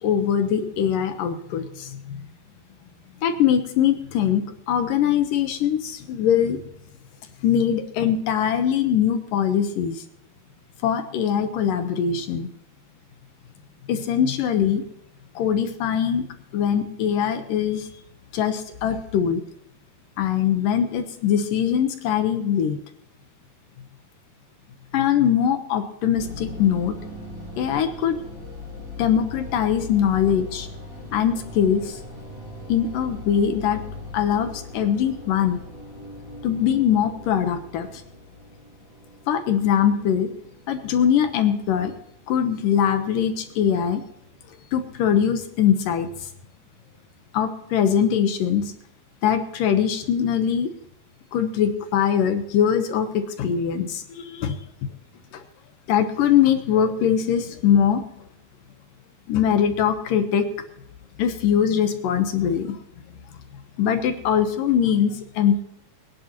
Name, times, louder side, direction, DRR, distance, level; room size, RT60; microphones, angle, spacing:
voice 1, 0.0-2.0 3.2-6.6 7.4-10.0 10.8-12.5 13.9-14.8 15.4-16.3 16.5-17.9 18.3-19.4 20.2-22.8 24.9-27.0 27.6-28.2 29.0-30.7 31.1-32.0 32.7-33.8 34.1-35.6 36.4-37.9 39.3-40.3 40.7-41.9 42.3-44.0 44.7-46.1 47.3-48.7 49.2-50.7 51.3-54.6 55.3-55.4 55.9-58.0 59.3-60.5 61.2-62.8 63.8-65.6, left 8 dB, 70° left, 7 dB, 2.5 m, -22 dB
sound 1, 26.1-44.5, left 2 dB, 15° right, 4.1 m, -40 dB
23.5 x 10.5 x 3.0 m, 0.78 s
omnidirectional pair, 4.4 m